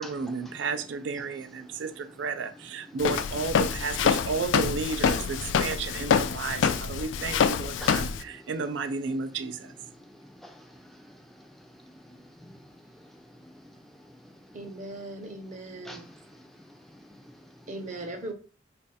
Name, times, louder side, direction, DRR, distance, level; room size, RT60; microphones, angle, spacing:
voice 1, 0.0-9.7, right 4 dB, 75° right, 0.4 m, -32 dB
Walk footsteps, 3.0-8.2, left 6 dB, 75° left, 0.3 m, -26 dB
voice 2, 7.8-8.1 9.9-14.6 15.8-17.7, equal, ahead, 0.5 m, -50 dB
voice 3, 14.5-16.1 17.7-18.3, right 2 dB, 40° right, 0.7 m, -38 dB
3.1 x 2.4 x 4.1 m
head